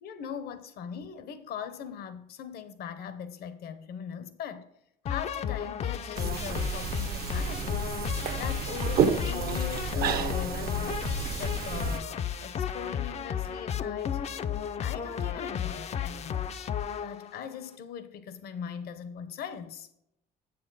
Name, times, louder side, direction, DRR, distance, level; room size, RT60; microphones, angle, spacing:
voice 1, 0.0-4.7 5.0-7.9 8.4-11.1 11.4-14.2 14.8-19.9, left 8 dB, 70° left, 0.8 m, -40 dB
sound 1, 5.1-17.5, left 8 dB, 40° left, 0.4 m, -33 dB
sound 2, 6.2-12.0, right 7 dB, 65° right, 0.8 m, -31 dB
7.5 x 7.0 x 3.9 m
cardioid pair, 110°, 17 cm